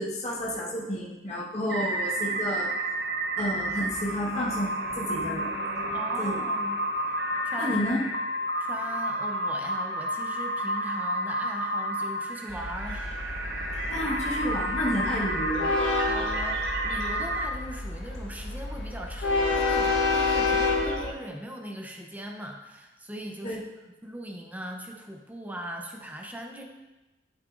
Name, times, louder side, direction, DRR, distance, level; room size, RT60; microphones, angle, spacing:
voice 1, 0.0-2.7 3.4-6.4 7.6-8.1 13.9-15.7 23.4-23.6, equal, 35° left, -6 dB, 1.4 m, -31 dB
sound 1, 1.7-17.5, right 1 dB, 60° right, 0.8 m, -30 dB
voice 2, 5.9-6.8 7.4-7.8 8.6-13.1 16.1-23.6 24.0-26.6, right 1 dB, 10° right, 1 dB, 0.7 m, -39 dB
Train, 12.5-21.1, left 3 dB, 80° left, 1.1 m, -29 dB
8.4 x 7.9 x 2.5 m, 1.1 s
head